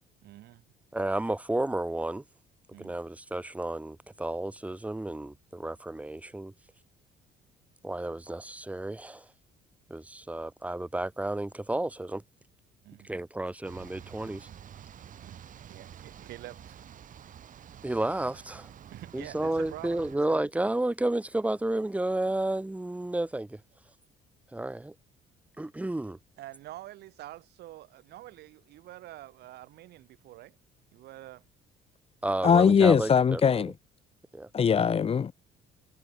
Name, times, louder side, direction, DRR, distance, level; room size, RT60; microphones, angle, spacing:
voice 1, 0.2-0.6 2.7-3.0 12.8-13.1 15.2-15.4 15.7-16.8 18.9-20.4 26.4-30.5 30.9-31.4, right 15 dB, 75° right, 5.2 m, -46 dB
voice 2, 0.9-2.2 2.8-6.5 7.8-9.3 9.9-12.2 13.0-14.5 17.8-18.7 19.1-23.6 24.5-24.9 25.6-26.2 32.2-33.6 34.3-34.5, right 1 dB, 10° right, 1.5 m, -31 dB
sound 1, 13.6-20.2, right 9 dB, 50° right, 5.7 m, -49 dB
voice 3, 32.4-33.7 34.5-35.3, left 7 dB, 35° left, 1.3 m, -21 dB
cardioid pair, 110°, 17 cm